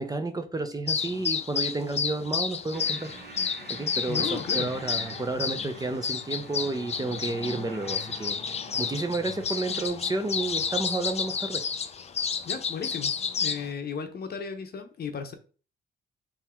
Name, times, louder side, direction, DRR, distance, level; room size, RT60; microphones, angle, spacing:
voice 1, 0.0-3.1 3.7-11.6, right 2 dB, 20° right, 0.6 m, -31 dB
sound 1, 0.9-13.7, left 6 dB, 35° left, 0.4 m, -31 dB
sound 2, 2.7-9.9, right 4 dB, 50° right, 1.0 m, -47 dB
voice 2, 4.1-4.7 12.5-13.1 13.4-15.3, left 6 dB, 50° left, 0.9 m, -34 dB
3.8 x 2.9 x 4.4 m
cardioid pair, 90°, 20 cm